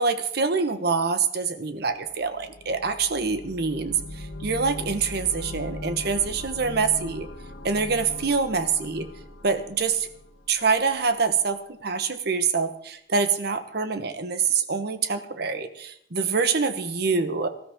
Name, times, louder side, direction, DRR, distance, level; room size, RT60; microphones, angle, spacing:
voice 1, 0.0-7.3 7.6-9.1 9.4-10.1 10.5-17.5, right 5 dB, 60° right, 9 dB, 1.1 m, -25 dB
sound 1, 1.9-10.8, left 1 dB, 70° left, 1.7 m, -39 dB
19.0 x 13.0 x 3.7 m, 0.69 s
head